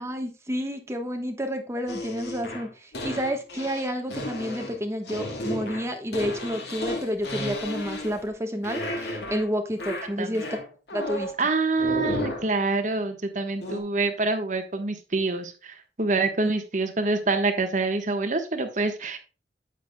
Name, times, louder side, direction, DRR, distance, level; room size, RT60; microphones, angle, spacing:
voice 1, 0.0-10.6 10.9-11.3 16.4-16.5, equal, 15° right, 4 dB, 1.2 m, -30 dB
sound 1, 1.9-8.3 8.6-9.5 9.8-11.4 11.8-12.5 13.6-13.8, left 1 dB, 70° left, 1.9 m, -33 dB
voice 2, 11.4-19.2, right 3 dB, 45° right, 6 dB, 1.3 m, -26 dB
9.2 x 8.2 x 2.3 m, 0.33 s
head